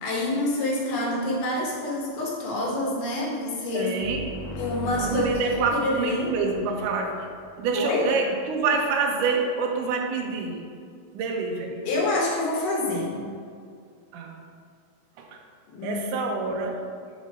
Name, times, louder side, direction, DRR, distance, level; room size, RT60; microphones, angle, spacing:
voice 1, 0.0-3.9 4.6-6.3 7.7-8.1 11.8-13.3 15.7-16.0, left 2 dB, 70° left, -2 dB, 2.6 m, -27 dB
voice 2, 3.7-4.3 5.0-7.3 7.6-10.6 11.1-11.8 14.1-14.4 15.2-15.4 15.8-16.8, right 4 dB, 75° right, 1 dB, 2.1 m, -27 dB
sound 1, 4.0-7.7, left 2 dB, 90° left, 2.5 m, -38 dB
6.4 x 4.2 x 5.0 m, 2.2 s
omnidirectional pair, 4.2 m